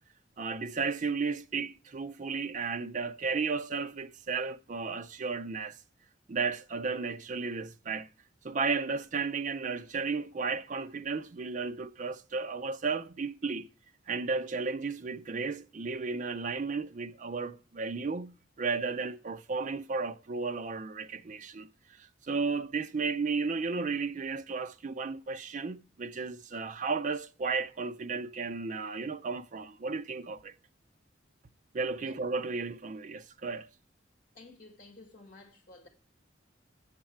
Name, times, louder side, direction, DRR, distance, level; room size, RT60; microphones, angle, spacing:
voice 1, 0.4-5.8 6.3-8.1 8.4-13.7 14.1-21.7 22.0-30.5 31.7-33.7, right 4 dB, 40° right, 0.4 m, -34 dB
voice 2, 34.3-35.9, left 2 dB, 45° left, 1.9 m, -53 dB
7.5 x 7.1 x 4.4 m
head